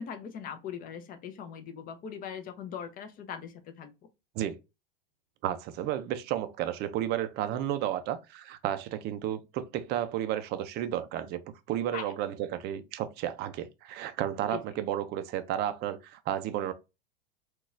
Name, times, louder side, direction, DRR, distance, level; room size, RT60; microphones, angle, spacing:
voice 1, 0.0-3.9 11.9-12.1 14.5-14.6, left 7 dB, 30° left, 0.6 m, -40 dB
voice 2, 5.4-11.4 11.7-16.7, right 11 dB, 35° right, 0.4 m, -32 dB
3.9 x 2.4 x 2.5 m
hypercardioid pair, 115°, 30 cm